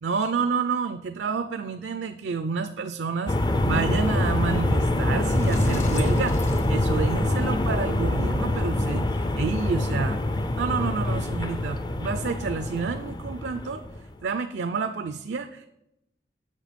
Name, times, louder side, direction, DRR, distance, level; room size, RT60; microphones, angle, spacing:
voice 1, 0.0-10.2 10.6-13.8 14.2-15.7, right 5 dB, 75° right, 9 dB, 0.4 m, -29 dB
sound 1, 3.3-14.1, left 1 dB, 25° left, 0.4 m, -25 dB
Sliding door, 4.7-4.8 5.2-7.5, left 1 dB, 45° left, 0.9 m, -36 dB
7.6 x 6.6 x 5.1 m, 0.86 s
head